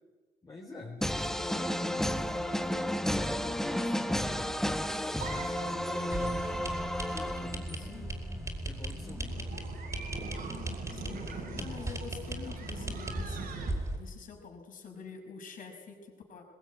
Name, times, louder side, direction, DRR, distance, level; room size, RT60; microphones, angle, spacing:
voice 1, 0.4-4.5 5.3-6.5 7.0-7.8 8.6-9.5, left 3 dB, 20° left, -2 dB, 4.1 m, -46 dB
sound 1, 1.0-8.0, equal, 5° left, 1.1 m, -32 dB
sound 2, 5.2-7.8 9.3-13.7, right 5 dB, 60° right, 5.6 m, -44 dB
sound 3, 6.1-14.0, right 1 dB, 15° right, 4.7 m, -38 dB
voice 2, 7.8-8.1 10.9-16.4, left 5 dB, 50° left, 3 dB, 5.9 m, -47 dB
21.5 x 21.0 x 9.5 m, 1.4 s
cardioid pair, 110°, 17 cm